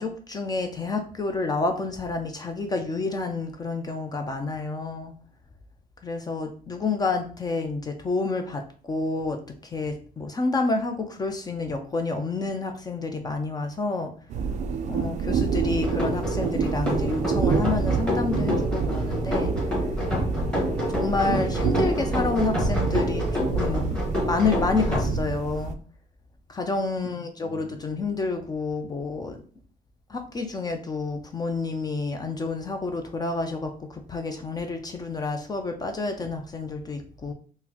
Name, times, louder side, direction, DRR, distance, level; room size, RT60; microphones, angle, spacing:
voice 1, 0.0-5.1 6.0-14.1 14.9-19.5 20.9-25.8 26.5-29.4 30.1-37.3, left 3 dB, 25° left, 5 dB, 0.4 m, -29 dB
sound 1, 14.3-25.7, right 5 dB, 45° right, 0.4 m, -28 dB
sound 2, 15.8-25.1, equal, 5° left, 1.1 m, -28 dB
3.9 x 2.1 x 2.8 m, 0.43 s
cardioid pair, 110°, 17 cm